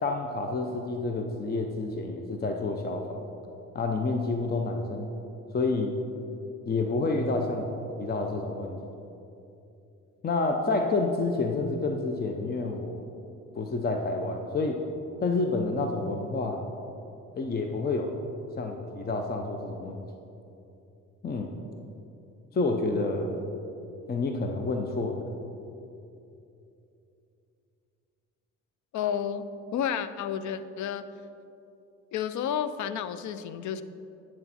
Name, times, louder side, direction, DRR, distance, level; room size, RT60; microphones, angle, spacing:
voice 1, 0.0-3.3 3.7-5.1 5.5-6.0 6.7-7.7 8.0-8.8 10.2-13.0 13.5-14.8 15.2-16.6 17.4-18.1 18.6-20.1 21.2-21.6 22.5-23.5 24.1-25.3, left 3 dB, 30° left, 4 dB, 0.7 m, -29 dB
voice 2, 28.9-29.5 29.7-31.1 32.1-33.8, left 8 dB, 70° left, 13 dB, 0.5 m, -31 dB
8.7 x 7.0 x 4.2 m, 2.8 s
cardioid pair, 90°, 30 cm